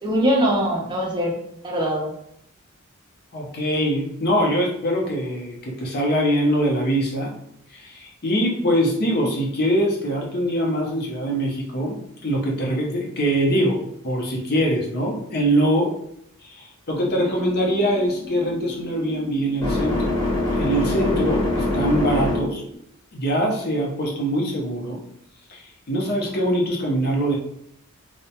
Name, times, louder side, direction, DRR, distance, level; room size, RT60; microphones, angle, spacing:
voice 1, 0.0-2.2, equal, 20° right, -1 dB, 0.5 m, -22 dB
voice 2, 3.3-7.3 7.7-15.9 16.4-20.1 20.6-22.6 23.1-25.0 25.5-27.4, equal, 45° left, -1 dB, 0.6 m, -23 dB
sound 1, 16.9-22.7, left 2 dB, 20° left, 0.8 m, -26 dB
2.2 x 2.1 x 2.8 m, 0.74 s
head